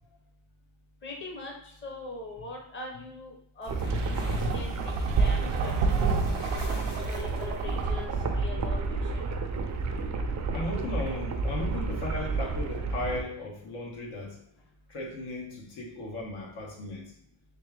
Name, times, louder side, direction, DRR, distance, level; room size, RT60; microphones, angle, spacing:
voice 1, 1.0-3.7 4.0-9.2, left 2 dB, 25° left, 0 dB, 0.7 m, -42 dB
sound 1, 3.6-7.8, left 3 dB, 55° left, 1.2 m, -39 dB
sound 2, 3.7-13.2, right 3 dB, 40° right, 0.5 m, -31 dB
sound 3, 3.9-8.4, right 5 dB, 80° right, 0.6 m, -30 dB
voice 2, 10.5-14.4 14.9-17.1, left 1 dB, 80° left, -2 dB, 1.3 m, -36 dB
3.5 x 3.3 x 3.3 m, 0.69 s
cardioid pair, 110°, 48 cm